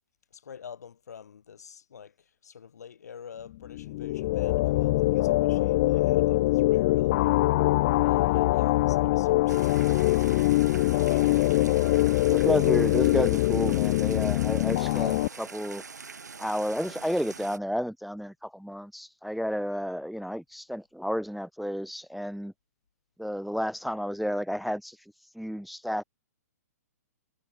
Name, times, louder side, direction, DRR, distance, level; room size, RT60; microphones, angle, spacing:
voice 1, 0.3-7.4 8.0-11.4, left 7 dB, 70° left, 2.1 m, -47 dB
sound 1, 3.7-15.3, left 18 dB, 45° left, 0.5 m, -23 dB
sound 2, 9.5-17.6, right 5 dB, 85° right, 3.2 m, -44 dB
voice 2, 12.2-15.8 16.4-22.5 23.2-25.0 25.3-26.0, equal, ahead, 0.7 m, -31 dB
hypercardioid pair, 130°, 9 cm